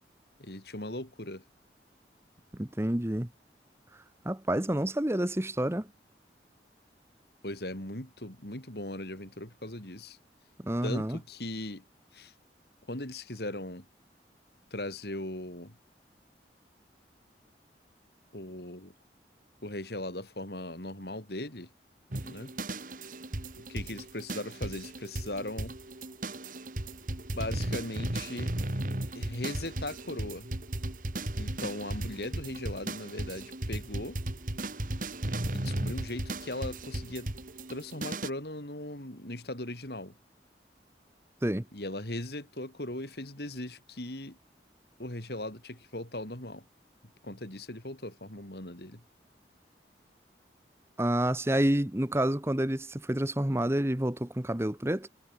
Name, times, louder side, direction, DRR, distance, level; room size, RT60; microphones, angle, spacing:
voice 1, 0.4-1.4 7.4-10.2 10.8-11.8 12.1-12.3 12.9-13.9 14.7-15.7 18.3-18.9 19.6-21.7 22.2-22.5 23.6-25.8 27.3-28.5 29.1-30.5 31.4-34.2 35.5-37.3 37.7-40.1 41.7-44.4 45.0-46.6 47.2-49.0, left 1 dB, 65° left, 4.6 m, -38 dB
voice 2, 2.5-3.3 4.2-5.9 10.6-11.2 41.4-41.7 51.0-55.1, right 1 dB, 15° right, 1.0 m, -28 dB
sound 1, 22.1-38.3, right 1 dB, 50° right, 2.2 m, -36 dB
head